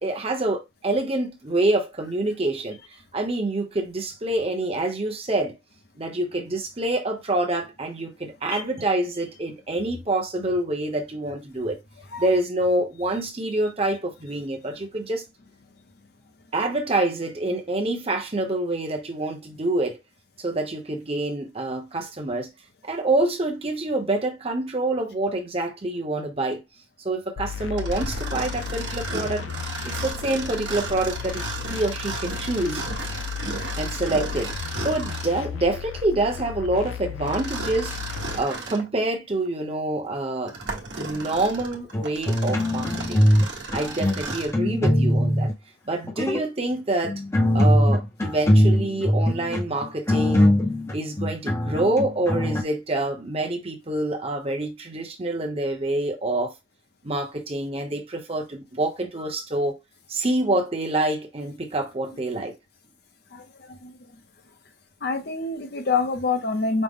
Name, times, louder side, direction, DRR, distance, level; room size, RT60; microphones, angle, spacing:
voice 1, 0.0-2.8 3.1-5.6 6.0-11.8 12.2-15.2 16.5-20.0 20.4-22.5 22.8-26.6 27.0-29.4 29.8-32.8 33.8-38.0 38.3-40.6 41.0-43.3 43.7-45.5 45.9-47.2 47.5-50.6 50.9-56.5 57.0-59.8 60.1-62.6, right 2 dB, 30° right, 0.8 m, -26 dB
sound 1, 27.4-38.4, left 8 dB, 85° left, 0.3 m, -34 dB
Mechanisms, 27.8-35.4 37.3-38.9 39.5-39.6 40.2-44.6, right 3 dB, 65° right, 1.1 m, -34 dB
sound 2, 41.9-43.5 43.7-45.5 46.0-46.5 47.0-52.6, equal, 15° left, 0.6 m, -21 dB
voice 2, 63.3-63.9 65.0-66.8, left 4 dB, 55° left, 0.7 m, -27 dB
5.2 x 2.1 x 3.6 m
head